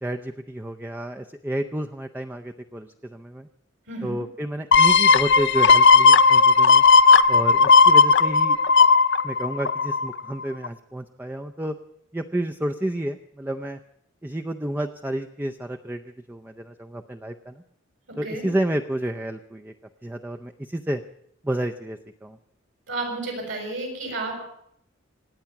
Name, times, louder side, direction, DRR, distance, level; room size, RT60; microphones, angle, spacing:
voice 1, 0.0-3.5 4.0-6.8 7.3-8.6 9.2-11.7 12.1-13.8 14.2-16.0 16.3-17.6 18.2-19.7 20.0-21.0 21.4-22.4, right 1 dB, 10° right, 4 dB, 0.5 m, -30 dB
voice 2, 3.9-4.2 18.2-18.5 22.9-24.3, right 2 dB, 75° right, 2 dB, 6.1 m, -31 dB
sound 1, 4.7-10.2 10.6-10.7, left 4 dB, 65° left, 0.5 m, -15 dB
26.0 x 9.5 x 5.9 m, 0.74 s
head